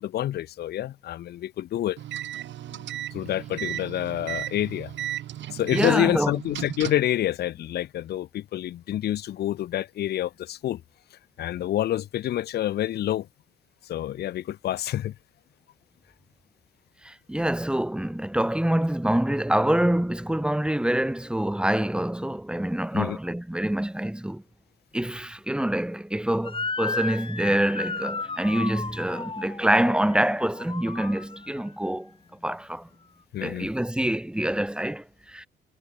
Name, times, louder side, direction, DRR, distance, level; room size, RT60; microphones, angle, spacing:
voice 1, 0.0-2.0 2.7-2.8 3.1-4.9 5.5-10.8 11.4-13.3 13.9-15.1 22.9-23.2 33.3-33.7, left 12 dB, 55° left, 0.5 m, -28 dB
sound 1, 2.0-7.1, right 12 dB, 70° right, 1.0 m, -35 dB
voice 2, 5.7-6.3 17.0-24.4 24.9-32.1 32.4-32.9 33.4-35.5, right 1 dB, 5° right, 1.4 m, -26 dB
Motor vehicle (road) / Siren, 26.4-31.7, left 4 dB, 25° left, 2.2 m, -34 dB
cardioid pair, 90°, 20 cm